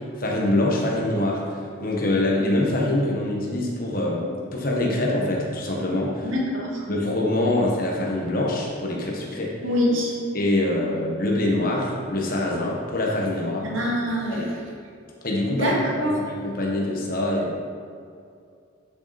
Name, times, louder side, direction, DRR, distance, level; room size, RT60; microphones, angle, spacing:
voice 1, 0.2-6.3 6.9-9.5 10.3-13.7 14.3-14.4 15.2-17.6, left 1 dB, 45° left, -2 dB, 1.3 m, -24 dB
voice 2, 6.2-6.8 9.6-10.1 13.6-14.5 15.5-16.1, equal, 75° right, -3 dB, 1.9 m, -25 dB
9.7 x 6.2 x 4.3 m, 2.4 s
head